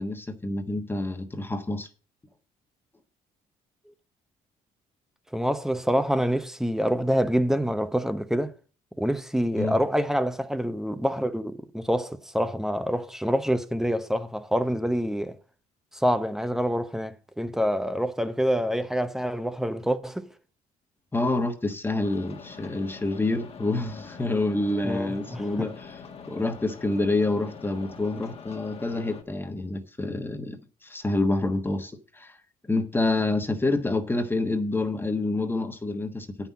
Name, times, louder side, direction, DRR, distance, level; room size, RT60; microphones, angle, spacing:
voice 1, 0.0-1.9 9.6-9.8 21.1-26.0 26.3-32.4 32.7-36.5, left 2 dB, 15° left, 1.3 m, -27 dB
voice 2, 5.3-8.5 9.0-15.3 15.9-20.3 24.8-25.7, equal, 5° right, 0.9 m, -26 dB
sound 1, 22.0-29.2, left 5 dB, 40° left, 1.5 m, -44 dB
9.0 x 5.8 x 7.2 m
cardioid pair, 105°, 16 cm